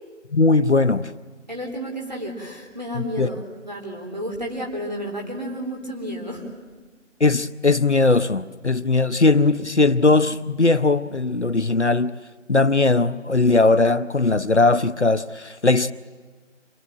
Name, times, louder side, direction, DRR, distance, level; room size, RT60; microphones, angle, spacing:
voice 1, 0.3-1.1 3.0-3.3 7.2-12.1 12.5-15.9, left 3 dB, 65° left, 0.8 m, -19 dB
voice 2, 1.5-6.5, equal, 35° right, 3.7 m, -31 dB
26.0 x 18.5 x 9.2 m
figure-of-eight pair, 180°, 38 cm